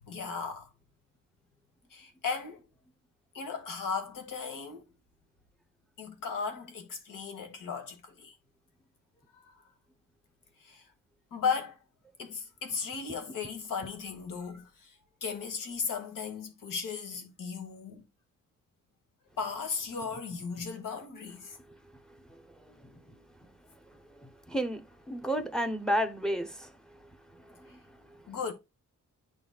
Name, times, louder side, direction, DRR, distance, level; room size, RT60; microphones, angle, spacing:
voice 1, 0.0-0.7 1.9-2.7 3.3-4.8 6.0-8.4 9.3-9.6 10.6-10.9 11.3-11.8 12.2-18.0 19.4-21.6 27.7-27.8 28.3-28.5, left 5 dB, 80° left, 1.5 m, -36 dB
voice 2, 24.5-26.7 27.6-27.8, equal, ahead, 0.7 m, -31 dB
10.5 x 3.9 x 2.3 m
wide cardioid pair, 140°, 32 cm